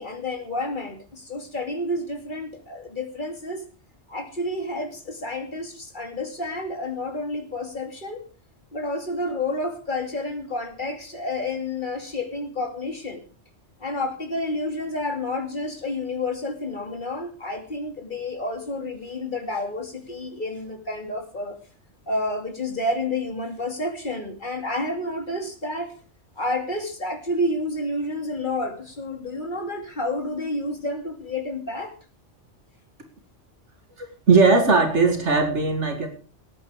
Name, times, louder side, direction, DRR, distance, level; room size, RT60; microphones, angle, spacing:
voice 1, 0.0-3.6 4.1-8.2 8.7-13.2 13.8-21.6 22.1-25.9 26.4-31.9, left 2 dB, 45° left, 5 dB, 2.6 m, -30 dB
voice 2, 34.0-36.1, right 4 dB, 75° right, 5 dB, 2.5 m, -19 dB
18.0 x 9.4 x 5.0 m, 0.40 s
omnidirectional pair, 1.2 m